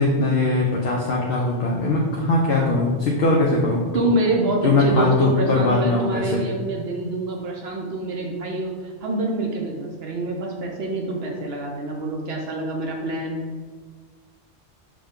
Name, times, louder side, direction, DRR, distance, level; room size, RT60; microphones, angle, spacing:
voice 1, 0.0-3.8 4.6-6.4, left 2 dB, 60° left, -3 dB, 0.8 m, -20 dB
voice 2, 3.9-13.4, right 2 dB, 65° right, 1 dB, 0.8 m, -26 dB
6.0 x 2.2 x 3.6 m, 1.5 s
omnidirectional pair, 1.2 m